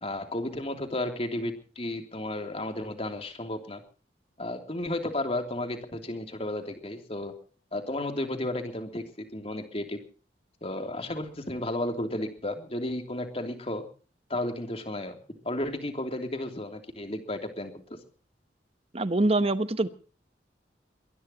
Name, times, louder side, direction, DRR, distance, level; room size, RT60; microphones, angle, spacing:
voice 1, 0.0-3.8 4.4-7.3 7.7-10.0 10.6-13.8 14.3-15.2 15.4-18.0, left 1 dB, 30° left, 5 dB, 3.0 m, -33 dB
voice 2, 18.9-19.9, right 2 dB, 30° right, 12 dB, 1.0 m, -24 dB
22.5 x 20.5 x 2.9 m, 0.40 s
head